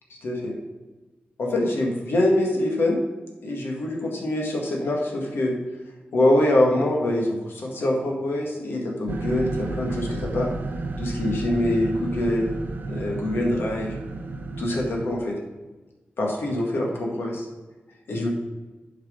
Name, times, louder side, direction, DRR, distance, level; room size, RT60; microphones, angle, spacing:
voice 1, 0.2-0.5 1.4-3.0 3.4-5.5 6.1-10.5 11.0-12.5 12.9-13.9 14.6-15.4 16.2-17.5 18.1-18.3, left 1 dB, 90° left, -1 dB, 1.8 m, -24 dB
sound 1, 9.1-15.1, right 2 dB, 55° right, 0.7 m, -32 dB
8.1 x 4.8 x 5.1 m, 1.2 s
wide cardioid pair, 175°, 4 cm